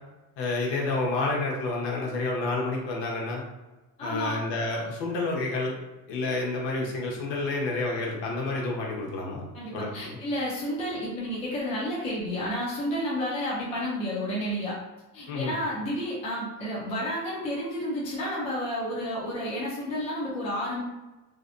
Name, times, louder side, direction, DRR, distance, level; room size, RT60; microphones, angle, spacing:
voice 1, 0.4-3.4 4.0-5.7 6.1-9.4 9.7-10.2 15.3-15.5, left 2 dB, 55° left, -2 dB, 0.9 m, -29 dB
voice 2, 4.0-4.4 9.5-14.8 15.1-20.8, equal, 15° left, -5 dB, 0.4 m, -31 dB
2.6 x 2.1 x 2.5 m, 1.1 s
supercardioid pair, 125°, 50 cm